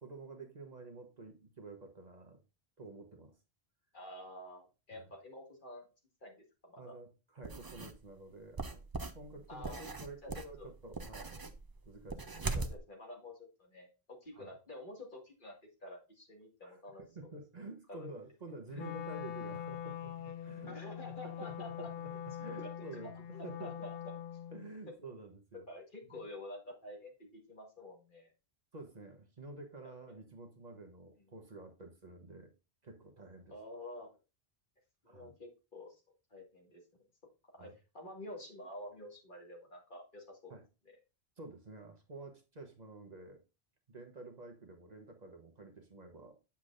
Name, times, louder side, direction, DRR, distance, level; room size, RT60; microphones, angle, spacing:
voice 1, 0.0-2.4 2.8-3.4 4.9-5.1 6.8-8.9 9.1-11.6 11.8-12.7 14.3-14.5 16.6-22.1 22.4-23.8 24.5-25.7 26.1-26.2 28.7-32.5 32.8-33.5 35.1-35.3 37.6-37.7 40.5-40.6 41.4-43.4 43.9-46.4, right 2 dB, 45° right, 5 dB, 1.1 m, -50 dB
voice 2, 3.9-5.9 6.2-7.0 9.5-9.9 10.2-10.7 12.5-15.6 15.8-17.3 17.9-18.1 18.7-19.0 20.7-21.9 22.5-22.6 23.0-24.0 25.7-28.3 30.1-30.2 33.5-34.1 35.0-36.0 36.3-36.8 37.5-40.5, left 1 dB, 55° left, 0 dB, 2.2 m, -49 dB
sound 1, 7.4-8.0 8.6-12.8, right 3 dB, 25° right, 0.5 m, -41 dB
Wind instrument woodwind instrument, 18.7-24.7, left 10 dB, 70° left, 0.8 m, -43 dB
8.1 x 7.1 x 2.5 m, 0.29 s
omnidirectional pair, 1.0 m